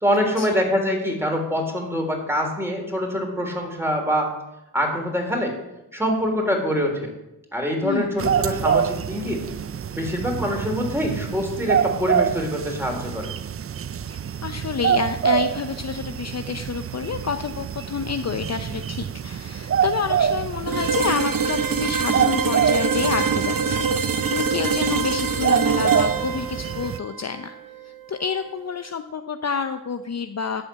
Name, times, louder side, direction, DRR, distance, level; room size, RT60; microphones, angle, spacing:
voice 1, 0.0-4.3 4.7-5.5 5.9-7.1 7.5-9.4 9.9-13.3, equal, 5° right, 1 dB, 3.3 m, -24 dB
voice 2, 7.8-8.3 14.1-27.5 27.8-30.6, left 6 dB, 45° left, 8 dB, 0.6 m, -29 dB
sound 1, 8.2-27.0, right 8 dB, 35° right, 0.4 m, -26 dB
sound 2, 20.7-28.5, right 5 dB, 60° right, 0.9 m, -25 dB
12.5 x 4.3 x 8.0 m, 0.94 s
cardioid pair, 50°, 39 cm